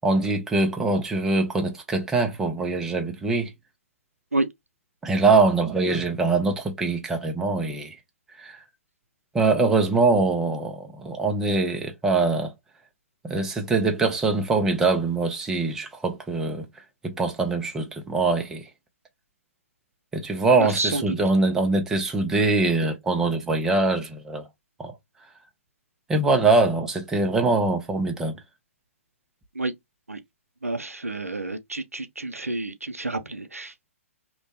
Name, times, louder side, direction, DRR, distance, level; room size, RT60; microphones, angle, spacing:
voice 1, 0.0-3.5 5.0-7.9 8.4-8.6 9.3-12.5 13.2-16.7 17.0-18.7 20.1-24.4 24.8-24.9 26.1-28.3, right 3 dB, 5° right, 0.4 m, -23 dB
voice 2, 20.6-21.0 29.6-29.7 30.1-30.2 30.6-33.9, right 2 dB, 80° right, 0.5 m, -29 dB
2.9 x 2.0 x 2.7 m
figure-of-eight pair, 125°, 8 cm